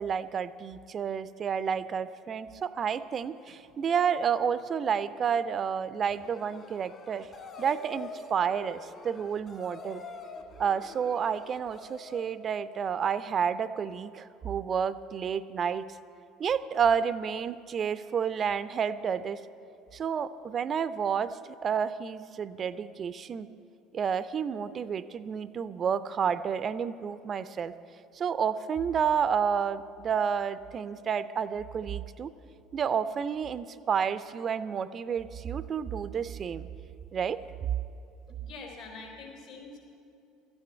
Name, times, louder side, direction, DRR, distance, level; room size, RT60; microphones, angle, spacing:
voice 1, 0.0-7.3 7.6-10.0 10.6-15.9 16.4-19.4 19.9-23.5 23.9-27.7 28.1-32.3 32.7-36.7 37.1-37.4, right 7 dB, 40° right, 15 dB, 0.5 m, -30 dB
sound 1, 6.2-12.4, left 3 dB, 40° left, 2.1 m, -45 dB
voice 2, 38.4-39.8, left 3 dB, 65° left, -1 dB, 4.3 m, -44 dB
13.5 x 9.7 x 9.0 m, 2.7 s
figure-of-eight pair, 65°, 0 cm